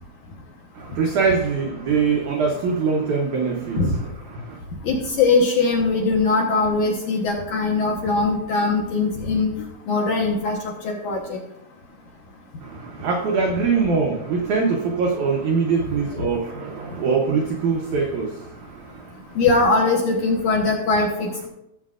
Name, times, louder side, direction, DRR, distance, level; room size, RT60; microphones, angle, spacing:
voice 1, 0.7-4.6 12.6-19.4 19.7-20.0, right 5 dB, 80° right, 0 dB, 1.7 m, -23 dB
voice 2, 4.8-9.5 9.9-10.6 10.8-11.4 19.4-21.5, left 3 dB, 65° left, -1 dB, 2.1 m, -21 dB
17.0 x 7.5 x 2.5 m, 0.85 s
omnidirectional pair, 4.8 m